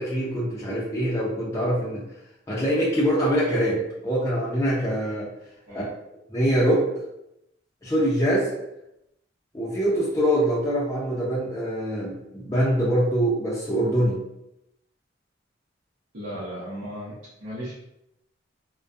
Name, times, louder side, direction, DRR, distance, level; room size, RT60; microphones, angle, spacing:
voice 1, 0.0-2.1 2.5-5.3 5.7-5.8 6.3-6.9 7.8-8.5 9.5-14.2, equal, 15° left, -7 dB, 0.4 m, -24 dB
voice 2, 16.1-17.1 17.4-17.7, equal, 75° right, -11 dB, 0.7 m, -35 dB
2.3 x 2.1 x 2.5 m, 0.86 s
head